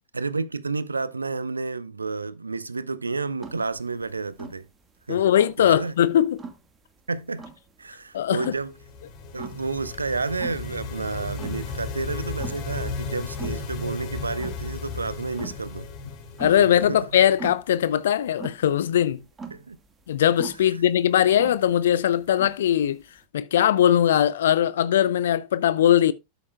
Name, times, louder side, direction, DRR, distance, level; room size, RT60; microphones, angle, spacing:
voice 1, 0.1-4.7 5.1-5.3 5.6-5.9 7.1-7.4 7.8-8.7 9.3-15.9 16.5-17.0 19.5-19.8, right 4 dB, 80° right, 0.6 m, -30 dB
sound 1, 3.4-23.2, right 5 dB, 15° right, 1.5 m, -42 dB
voice 2, 5.1-6.4 8.1-8.4 16.4-19.2 20.1-23.0 23.3-26.1, left 10 dB, 60° left, 0.5 m, -20 dB
sound 2, 8.6-17.3, left 4 dB, 40° left, 1.7 m, -35 dB
13.0 x 6.9 x 2.2 m
figure-of-eight pair, 90°, 0 cm